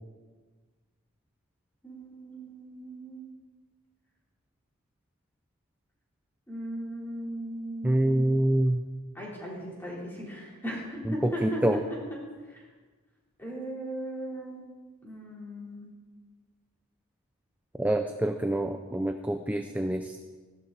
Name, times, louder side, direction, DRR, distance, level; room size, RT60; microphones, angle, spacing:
voice 1, 1.8-3.3 6.5-8.3 9.1-10.8 11.1-11.8 13.4-14.6 15.0-15.9, right 1 dB, 10° left, -5 dB, 3.5 m, -37 dB
voice 2, 7.8-8.8 11.1-11.8 17.8-20.2, right 1 dB, 5° right, 6 dB, 0.4 m, -26 dB
15.5 x 11.5 x 4.1 m, 1.4 s
head